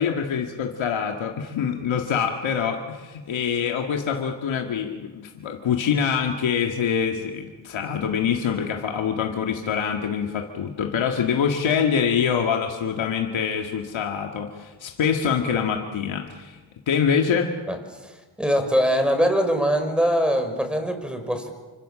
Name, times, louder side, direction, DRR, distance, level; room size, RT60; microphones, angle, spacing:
voice 1, 0.0-16.6 16.9-17.5, left 7 dB, 85° left, 2 dB, 2.1 m, -25 dB
voice 2, 17.7-21.5, equal, ahead, 7 dB, 5.6 m, -23 dB
28.5 x 25.0 x 7.6 m, 1.3 s
cardioid pair, 75°, 45 cm